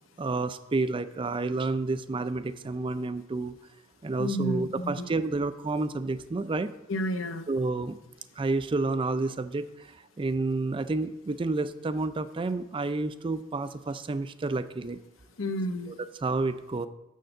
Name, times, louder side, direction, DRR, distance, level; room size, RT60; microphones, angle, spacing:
voice 1, 0.2-3.6 4.0-6.7 7.5-8.0 8.4-15.0 15.9-16.9, right 3 dB, 25° right, 12 dB, 0.4 m, -30 dB
voice 2, 4.2-5.1 6.9-7.5 15.4-16.0, equal, 85° left, 9 dB, 0.7 m, -31 dB
6.7 x 6.4 x 6.6 m, 0.92 s
head